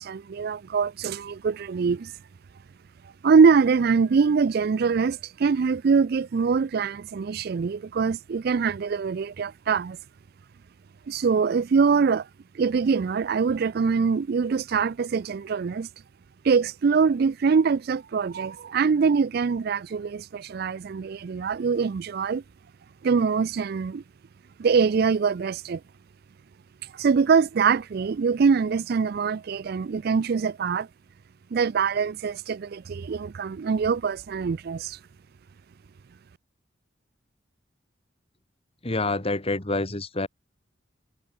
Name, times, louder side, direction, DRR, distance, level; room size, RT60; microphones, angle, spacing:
voice 1, 0.0-2.1 3.2-10.0 11.1-12.3 12.5-15.9 16.4-22.4 23.0-24.0 24.6-25.8 26.9-30.9 31.5-35.0, right 5 dB, 55° right, 0.4 m, -23 dB
voice 2, 38.8-40.3, left 2 dB, 30° left, 2.1 m, -27 dB
head